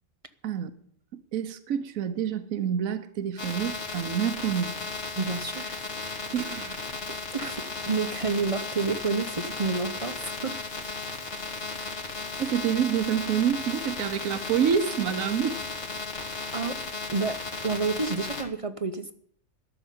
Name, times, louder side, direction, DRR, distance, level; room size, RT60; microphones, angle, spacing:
voice 1, 1.1-4.7 6.3-6.8 12.4-15.6, right 8 dB, 80° right, 11 dB, 1.3 m, -27 dB
sound 1, 3.4-18.4, left 3 dB, 60° left, 2.3 m, -35 dB
voice 2, 5.2-5.8 7.3-10.6 16.5-16.8 17.1-19.1, right 4 dB, 35° right, 9 dB, 0.6 m, -29 dB
13.0 x 7.0 x 9.8 m, 0.64 s
omnidirectional pair, 1.4 m